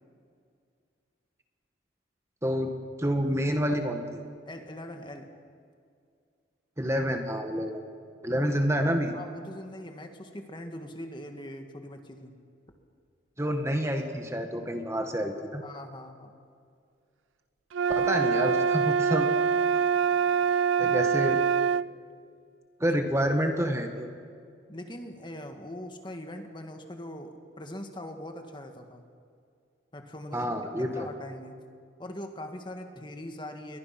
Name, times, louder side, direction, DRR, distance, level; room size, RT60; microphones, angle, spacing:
voice 1, 2.4-2.7 3.0-4.2 6.8-7.8 8.2-9.1 13.4-15.6 17.9-19.3 20.8-21.4 22.8-24.1 30.3-31.1, equal, 15° right, 4 dB, 1.6 m, -28 dB
voice 2, 4.4-5.3 8.3-8.4 9.1-12.3 15.6-16.3 24.7-29.0 29.9-30.5 30.8-31.6 32.0-33.8, left 1 dB, 25° left, 5 dB, 1.8 m, -41 dB
sound 1, 17.7-21.9, right 6 dB, 90° right, 0.5 m, -24 dB
29.5 x 23.0 x 5.9 m, 2.3 s
head